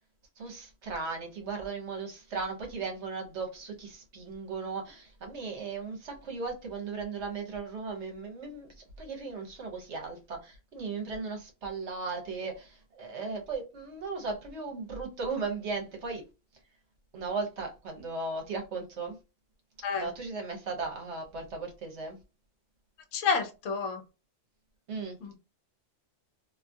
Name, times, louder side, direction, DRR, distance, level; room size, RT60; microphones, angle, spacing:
voice 1, 0.4-16.2 17.1-19.2 20.0-22.2 24.9-25.4, right 4 dB, 60° right, 1.1 m, -37 dB
voice 2, 23.1-24.0 25.2-25.3, left 5 dB, 70° left, 1.0 m, -29 dB
2.7 x 2.3 x 2.5 m
omnidirectional pair, 1.4 m